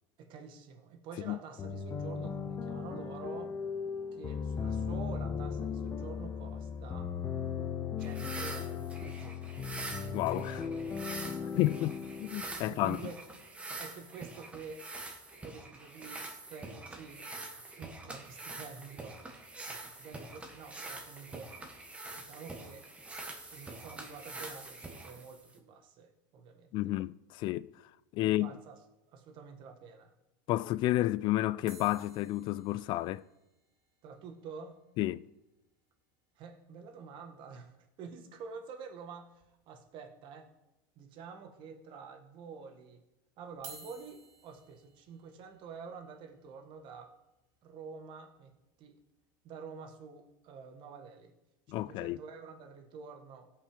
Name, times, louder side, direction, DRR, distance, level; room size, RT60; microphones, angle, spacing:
voice 1, 0.2-3.6 4.1-7.1 8.0-9.7 11.2-11.8 12.6-13.2 13.7-14.9 15.4-17.3 17.6-19.2 19.7-21.6 22.2-22.9 23.5-26.8 28.2-28.8 29.1-30.1 34.0-34.8 36.4-40.5 41.0-43.0 43.4-47.2 47.6-49.0 49.4-51.3 51.7-53.5, right 5 dB, 45° right, 1.7 m, -48 dB
sound 1, 1.6-13.3, left 6 dB, 25° left, 0.8 m, -37 dB
sound 2, 8.0-25.6, right 2 dB, 10° right, 1.4 m, -45 dB
voice 2, 10.1-10.7 11.5-13.0 26.7-27.7 28.1-28.5 30.5-33.2 35.0-35.3 51.7-52.2, left 16 dB, 45° left, 0.4 m, -31 dB
sound 3, 31.7-36.0 36.3-36.4 36.6-36.8 37.1-37.3 38.6-38.7 39.4-39.9 40.4-40.5 41.4-41.5 43.5-49.6 50.1-50.4, right 4 dB, 30° right, 3.7 m, -57 dB
16.0 x 5.6 x 5.2 m
supercardioid pair, 130°, 11 cm